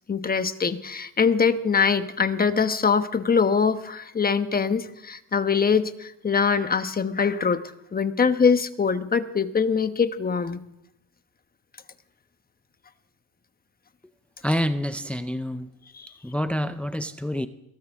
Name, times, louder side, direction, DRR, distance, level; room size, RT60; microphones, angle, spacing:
voice 1, 0.1-7.6 7.9-10.6 15.9-16.1, left 5 dB, 30° left, 10 dB, 1.1 m, -23 dB
voice 2, 14.4-15.7 16.2-17.5, equal, 5° left, 10 dB, 0.6 m, -27 dB
22.5 x 17.5 x 3.6 m, 0.81 s
cardioid pair, 90°, 30 cm